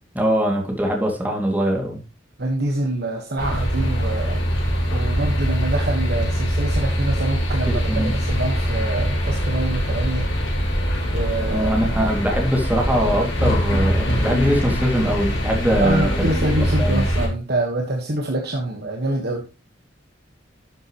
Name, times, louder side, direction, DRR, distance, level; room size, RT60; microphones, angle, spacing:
voice 1, 0.1-2.0 7.7-8.2 11.5-16.3 16.6-17.1, equal, 10° right, 0 dB, 2.5 m, -22 dB
voice 2, 2.4-4.4 4.9-10.3 11.1-11.7 15.8-19.4, right 1 dB, 55° right, 2 dB, 1.5 m, -25 dB
sound 1, 3.4-17.3, equal, 70° left, 5.6 m, -23 dB
12.0 x 7.5 x 3.1 m, 0.31 s
head